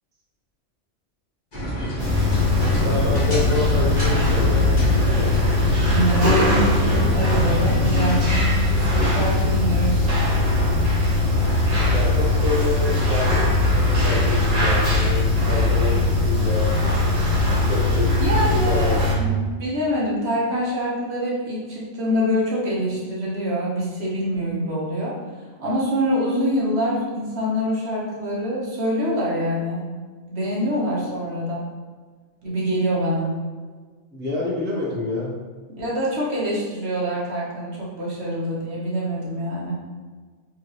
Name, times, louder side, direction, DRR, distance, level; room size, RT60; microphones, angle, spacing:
sound 1, 1.5-8.4, equal, 45° left, 1.4 m, -28 dB
sound 2, 2.0-19.1, left 2 dB, 35° right, 1.2 m, -20 dB
voice 1, 2.8-4.7 11.9-13.5 13.7-16.7 17.7-18.0 18.7-18.9 34.1-35.3, left 3 dB, 10° right, -5 dB, 0.6 m, -27 dB
voice 2, 5.9-10.3 18.2-25.1 25.6-29.8 30.3-31.6 32.4-33.3 35.7-39.7, equal, 60° right, -6 dB, 1.4 m, -25 dB
4.4 x 3.0 x 3.1 m, 1.4 s
omnidirectional pair, 1.2 m